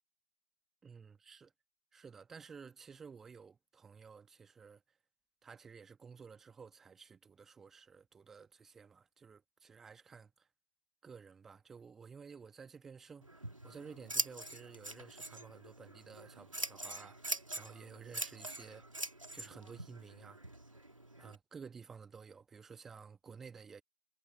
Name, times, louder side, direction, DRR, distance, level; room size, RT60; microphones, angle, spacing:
voice 1, 0.8-1.5 1.9-4.8 5.4-10.5 11.0-18.9 19.3-20.4 21.2-23.8, right 5 dB, ahead, 1.8 m, -53 dB
Scissors, 13.2-21.3, right 2 dB, 70° right, 2.3 m, -43 dB
figure-of-eight pair, 160°, 18 cm